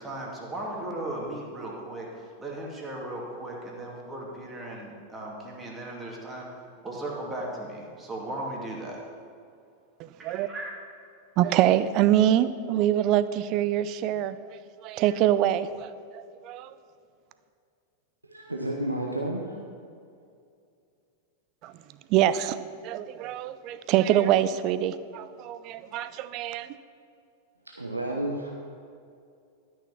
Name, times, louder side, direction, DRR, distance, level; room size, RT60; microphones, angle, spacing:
voice 1, 0.0-2.1 2.4-6.5 6.8-9.0 10.2-10.7, right 1 dB, 15° right, -2 dB, 2.3 m, -36 dB
voice 2, 10.0-10.5 11.4-16.7 21.6-21.7 22.1-26.7, right 11 dB, 40° right, 14 dB, 0.5 m, -25 dB
voice 3, 18.2-19.6 27.6-28.5, right 1 dB, 85° right, 0 dB, 1.0 m, -31 dB
13.0 x 6.4 x 6.0 m, 2.4 s
figure-of-eight pair, 90°, 0 cm